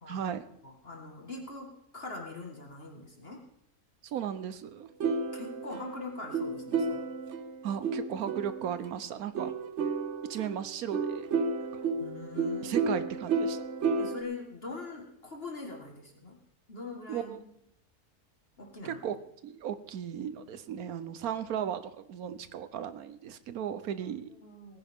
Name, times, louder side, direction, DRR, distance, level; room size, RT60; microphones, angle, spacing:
voice 1, 0.1-0.5 4.0-4.9 7.6-9.5 10.3-11.3 11.7-11.8 12.6-13.6 17.1-17.4 18.8-19.2 19.4-24.3, right 9 dB, 75° right, 13 dB, 1.3 m, -36 dB
voice 2, 0.6-3.4 5.3-7.1 11.9-12.9 14.0-16.4 16.7-17.5 18.6-19.0 24.1-24.8, left 3 dB, 40° left, 1 dB, 2.0 m, -43 dB
sound 1, 5.0-8.9 9.3-14.2, right 4 dB, 55° right, 1.0 m, -32 dB
18.0 x 10.5 x 3.6 m, 0.77 s
omnidirectional pair, 1.6 m